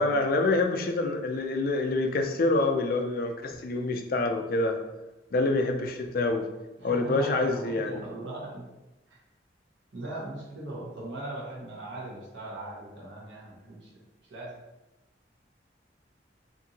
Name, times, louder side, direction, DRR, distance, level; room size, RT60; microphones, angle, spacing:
voice 1, 0.0-4.8 5.3-6.5 6.8-8.1, left 2 dB, 50° left, 4 dB, 0.3 m, -26 dB
voice 2, 6.8-8.6 9.1-9.2 9.9-13.9 14.3-14.6, right 2 dB, 75° right, -5 dB, 0.7 m, -39 dB
2.7 x 2.6 x 2.7 m, 1.0 s
head